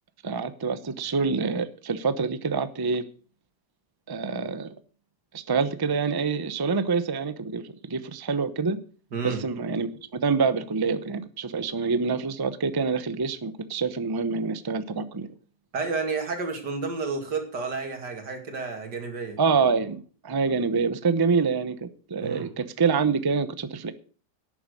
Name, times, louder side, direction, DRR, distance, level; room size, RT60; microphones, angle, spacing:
voice 1, 0.2-3.0 4.1-4.7 5.3-8.8 9.2-15.3 19.4-23.9, right 5 dB, 25° right, 0.5 m, -26 dB
voice 2, 9.1-9.4 15.7-19.4 22.2-22.5, right 4 dB, 90° right, 3.0 m, -31 dB
11.5 x 8.8 x 6.5 m
omnidirectional pair, 1.8 m